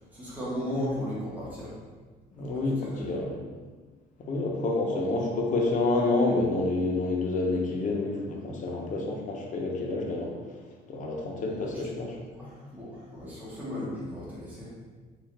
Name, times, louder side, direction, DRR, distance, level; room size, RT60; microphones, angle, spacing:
voice 1, 0.0-1.7 2.4-3.3 11.5-14.7, left 1 dB, 10° right, -8 dB, 1.1 m, -36 dB
voice 2, 2.3-3.4 4.3-10.3 10.9-12.1, left 2 dB, 50° left, 0 dB, 0.7 m, -28 dB
3.7 x 2.5 x 3.2 m, 1.4 s
cardioid pair, 110°, 17 cm